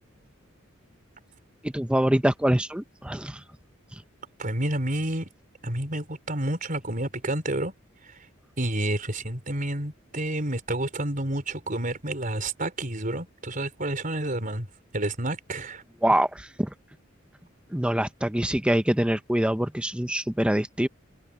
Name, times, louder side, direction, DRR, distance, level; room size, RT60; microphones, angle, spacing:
voice 1, 1.6-3.4 3.9-4.0 16.0-16.7 17.7-20.9, right 1 dB, 5° right, 0.7 m, -24 dB
voice 2, 4.4-5.3 5.6-7.7 8.6-14.7 14.9-15.8, right 1 dB, 40° right, 5.0 m, -29 dB
head